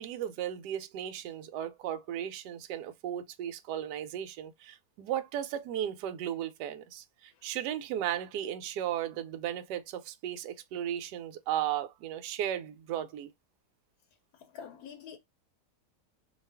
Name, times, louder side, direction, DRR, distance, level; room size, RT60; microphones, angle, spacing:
voice 1, 0.0-13.3, right 11 dB, 75° right, 1.1 m, -35 dB
voice 2, 14.3-15.2, left 7 dB, 70° left, 1.0 m, -47 dB
2.8 x 2.4 x 3.3 m
omnidirectional pair, 1.9 m